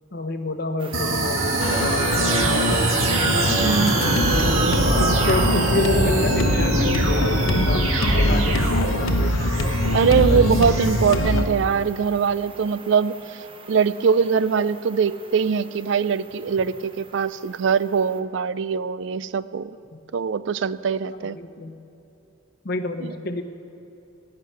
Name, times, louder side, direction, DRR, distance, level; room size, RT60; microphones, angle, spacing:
voice 1, 0.1-2.1 2.4-2.6 4.0-4.6 5.1-7.8 8.1-9.7 10.2-10.6 19.9-20.0 21.2-21.7 22.6-23.4, left 2 dB, 50° left, 7 dB, 0.9 m, -29 dB
sound 1, 0.8-18.2, right 3 dB, 25° right, 0.7 m, -35 dB
sound 2, 0.9-11.2, right 2 dB, 85° right, 1.5 m, -23 dB
sound 3, 1.6-11.5, left 1 dB, 85° left, 1.0 m, -23 dB
voice 2, 3.6-4.0 9.9-13.2 13.7-19.8 20.1-21.4 23.0-23.1, right 6 dB, 60° right, 16 dB, 0.4 m, -22 dB
16.5 x 5.8 x 9.5 m, 3.0 s
head